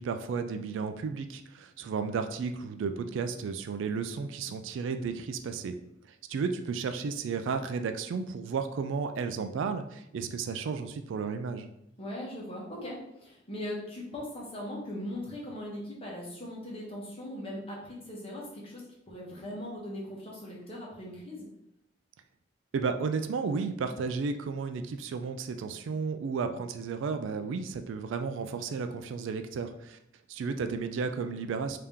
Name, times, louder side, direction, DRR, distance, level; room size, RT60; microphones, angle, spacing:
voice 1, 0.0-5.7 6.1-11.7 22.7-30.0 30.3-31.8, right 5 dB, 70° right, 8 dB, 0.3 m, -33 dB
voice 2, 12.0-21.5, left 1 dB, 30° left, -4 dB, 1.1 m, -40 dB
3.5 x 2.8 x 3.5 m, 0.79 s
head